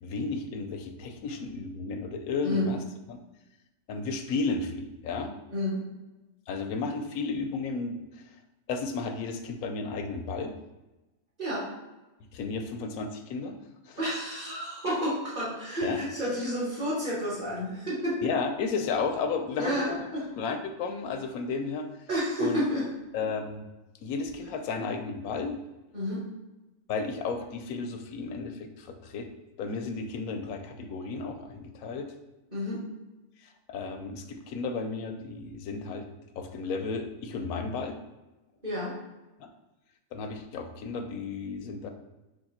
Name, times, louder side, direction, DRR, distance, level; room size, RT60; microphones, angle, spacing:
voice 1, 0.0-2.8 3.9-5.3 6.5-8.0 8.7-10.5 12.3-13.6 13.9-14.0 15.8-16.0 18.2-20.0 20.4-21.9 22.4-22.6 23.1-23.7 24.0-25.6 26.9-29.3 29.6-32.1 33.4-36.1 36.4-38.0 40.1-41.9, left 4 dB, 80° left, 6 dB, 1.0 m, -33 dB
voice 2, 5.5-5.8 11.4-11.7 14.0-18.3 19.6-20.2 22.1-22.9 25.9-26.2 32.5-32.8 38.6-38.9, equal, 30° right, -12 dB, 1.6 m, -30 dB
3.6 x 3.2 x 4.1 m, 1.1 s
omnidirectional pair, 1.5 m